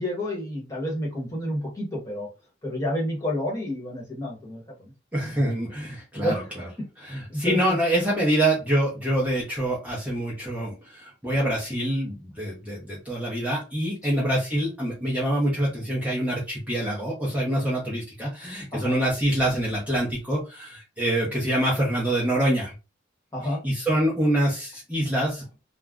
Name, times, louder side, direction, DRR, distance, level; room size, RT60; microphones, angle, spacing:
voice 1, 0.0-2.3 2.6-4.9 6.1-6.5 7.3-7.8 14.0-14.2 18.7-18.9 23.3-23.6, left 1 dB, 15° left, -3 dB, 1.0 m, -30 dB
voice 2, 5.1-6.7 7.0-22.7 23.6-25.4, right 1 dB, 10° right, -5 dB, 0.7 m, -25 dB
2.4 x 2.1 x 3.5 m, 0.30 s
head